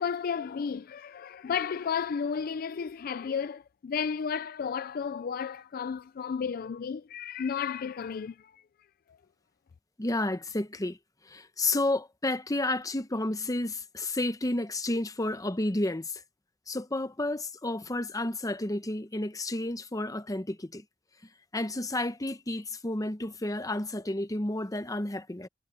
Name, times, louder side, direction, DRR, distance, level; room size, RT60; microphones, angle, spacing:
voice 1, 0.0-8.6, left 6 dB, 50° left, 0.4 m, -33 dB
voice 2, 10.0-11.0 11.3-16.2 16.7-20.8 21.5-25.5, left 2 dB, 20° left, 0.9 m, -31 dB
head